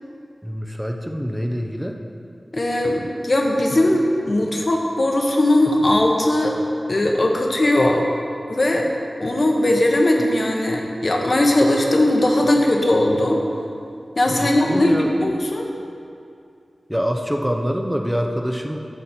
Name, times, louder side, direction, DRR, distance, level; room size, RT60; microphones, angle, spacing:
voice 1, 0.4-2.0 14.4-15.1 16.9-18.8, equal, 5° right, 3 dB, 0.7 m, -25 dB
voice 2, 2.5-6.6 6.9-8.1 8.5-8.8 9.2-13.4 14.2-15.7, left 1 dB, 50° left, 0 dB, 1.0 m, -19 dB
10.0 x 6.3 x 4.3 m, 2.5 s
wide cardioid pair, 50°, 0 cm